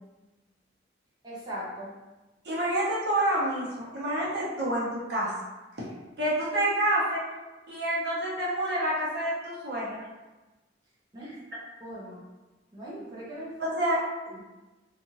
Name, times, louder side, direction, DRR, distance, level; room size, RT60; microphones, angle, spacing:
voice 1, 1.2-1.9 11.1-11.4 11.8-12.2 12.7-13.6 14.3-14.4, equal, 20° right, -8 dB, 0.7 m, -39 dB
voice 2, 2.4-5.3 6.2-7.2 7.7-10.0 13.7-14.0, right 1 dB, 60° right, -6 dB, 0.9 m, -28 dB
2.7 x 2.5 x 2.9 m, 1.1 s
head